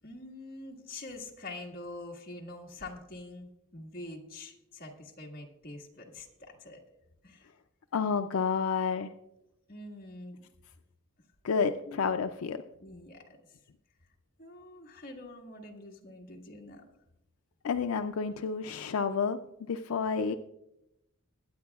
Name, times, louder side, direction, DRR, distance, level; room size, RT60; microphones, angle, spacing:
voice 1, 0.0-6.8 7.2-7.5 9.7-10.4 11.9-12.0 12.8-13.6 14.4-16.9, left 2 dB, 45° left, 0 dB, 1.7 m, -45 dB
voice 2, 7.9-9.1 11.4-12.6 17.6-19.4 19.7-20.4, left 5 dB, 80° left, 8 dB, 0.4 m, -30 dB
21.0 x 9.5 x 2.4 m, 0.88 s
head